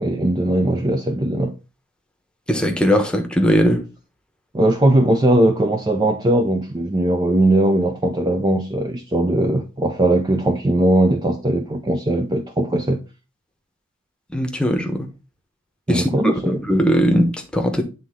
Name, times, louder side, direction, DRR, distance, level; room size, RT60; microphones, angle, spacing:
voice 1, 0.0-1.5 4.5-13.0 15.9-16.6, right 1 dB, 20° right, 0.5 m, -19 dB
voice 2, 2.5-3.8 14.3-15.1 15.9-17.8, equal, 5° left, 1.0 m, -19 dB
9.5 x 3.6 x 3.6 m
head